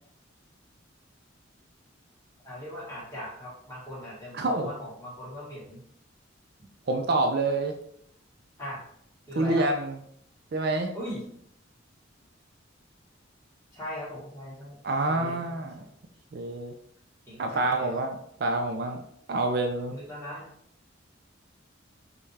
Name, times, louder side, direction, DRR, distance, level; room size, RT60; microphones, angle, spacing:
voice 1, 2.4-5.8 8.6-8.8 9.3-9.7 10.9-11.3 13.7-14.8 15.1-15.9 17.2-18.0 19.9-20.5, equal, 15° left, -7 dB, 1.6 m, -39 dB
voice 2, 4.3-4.7 6.9-7.8 9.4-9.9 10.5-10.9 14.8-15.7 16.3-16.7 17.4-19.0 19.3-19.9, right 2 dB, 50° right, 4 dB, 0.4 m, -27 dB
5.4 x 2.3 x 3.2 m, 0.68 s
head